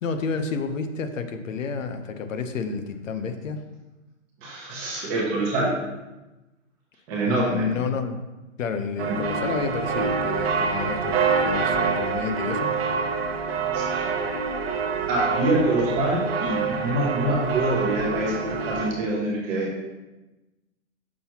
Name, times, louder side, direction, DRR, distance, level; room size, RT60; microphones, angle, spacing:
voice 1, 0.0-3.6 7.3-8.2 8.6-11.2 11.4-12.7, left 5 dB, 80° left, 8 dB, 0.9 m, -30 dB
voice 2, 4.4-5.7 7.1-7.7 9.1-9.2 13.7-14.1 15.1-19.7, right 1 dB, 15° right, -3 dB, 0.9 m, -25 dB
sound 1, 9.0-18.9, right 5 dB, 50° right, 0.9 m, -26 dB
6.3 x 5.8 x 2.9 m, 1.1 s
hypercardioid pair, 170°, 39 cm